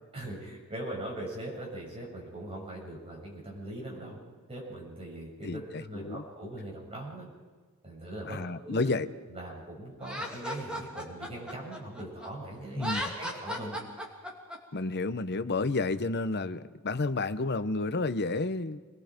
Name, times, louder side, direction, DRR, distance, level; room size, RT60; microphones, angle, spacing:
voice 1, 0.1-4.2 4.5-7.3 7.8-8.9 9.3-13.8, right 1 dB, 30° right, -2 dB, 7.9 m, -41 dB
voice 2, 5.4-6.2 8.3-9.1 12.8-13.0 14.7-18.8, left 3 dB, 50° left, 12 dB, 0.9 m, -31 dB
Laughter, 10.0-12.3 12.7-14.6, equal, 5° right, 2.8 m, -36 dB
27.5 x 21.0 x 5.2 m, 1.4 s
head